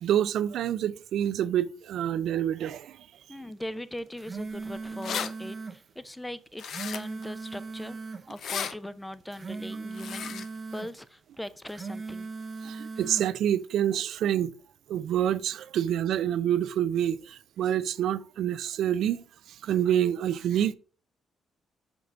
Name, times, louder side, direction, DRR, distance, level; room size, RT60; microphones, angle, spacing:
voice 1, 0.0-3.1 12.6-14.5 14.9-19.2 19.6-20.7, right 10 dB, 75° right, 0.4 m, -27 dB
voice 2, 3.3-8.0 8.3-10.5 10.7-12.3, left 1 dB, 10° left, 0.5 m, -40 dB
sound 1, 4.0-5.8 6.5-8.3 9.1-10.9 11.6-13.3, right 4 dB, 35° right, 0.7 m, -38 dB
sound 2, 4.6-4.7 4.8-5.3 6.6-7.2 8.3-8.7 9.9-10.5, left 7 dB, 65° left, 0.6 m, -34 dB
5.9 x 5.2 x 3.7 m
cardioid pair, 90°, 0 cm